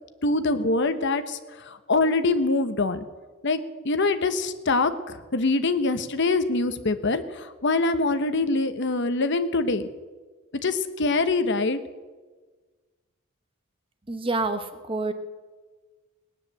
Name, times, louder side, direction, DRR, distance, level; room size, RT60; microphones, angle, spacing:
voice 1, 0.2-3.1 3.4-3.6 3.8-9.9 10.6-11.8, left 3 dB, 55° left, 10 dB, 1.0 m, -24 dB
voice 2, 14.1-15.1, right 3 dB, 25° right, 9 dB, 1.1 m, -27 dB
19.0 x 9.8 x 7.5 m, 1.3 s
head